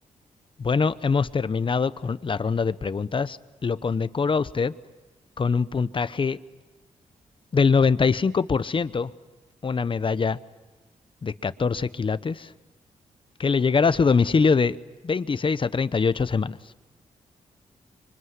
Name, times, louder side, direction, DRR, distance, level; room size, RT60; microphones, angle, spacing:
voice 1, 0.6-4.7 5.4-6.4 7.5-9.1 9.6-10.4 11.2-12.5 13.4-14.8 15.0-16.6, left 5 dB, 40° left, 15 dB, 0.9 m, -23 dB
25.5 x 24.0 x 9.6 m, 1.1 s
cardioid pair, 80°, 14 cm